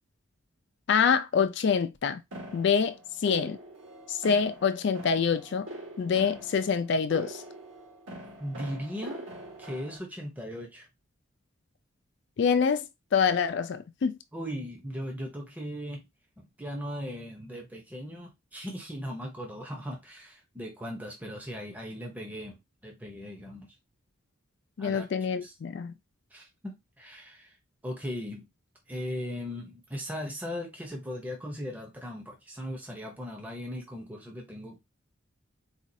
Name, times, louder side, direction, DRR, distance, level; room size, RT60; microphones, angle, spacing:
voice 1, 0.9-2.2 2.5-3.6 4.1-5.7 6.0-7.4 12.4-12.9 13.1-14.2 24.8-25.9, left 6 dB, 55° left, 0.3 m, -26 dB
sound 1, 2.3-10.0, right 1 dB, 65° right, 1.5 m, -44 dB
voice 2, 8.4-9.2 9.6-10.9 14.3-16.1 16.4-23.7 24.8-25.1 25.4-25.5 26.3-27.5 27.8-28.5 28.9-34.8, equal, 10° right, 0.7 m, -38 dB
4.1 x 2.4 x 2.6 m
head